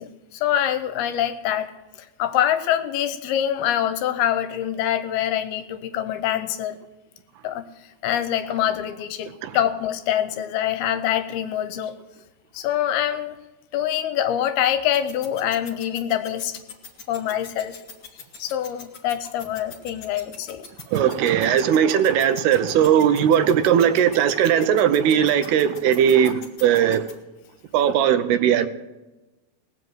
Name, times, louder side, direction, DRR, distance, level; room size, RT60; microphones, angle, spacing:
voice 1, 0.0-1.7 2.2-6.8 7.4-7.6 8.0-12.0 12.5-13.4 13.7-16.6 17.1-17.8 18.4-20.7, left 11 dB, 75° left, 2.6 m, -25 dB
sound 1, 14.9-27.1, left 5 dB, 40° left, 2.8 m, -41 dB
voice 2, 20.9-27.0 27.7-28.7, right 9 dB, 80° right, 2.6 m, -18 dB
19.0 x 7.7 x 7.8 m
omnidirectional pair, 4.7 m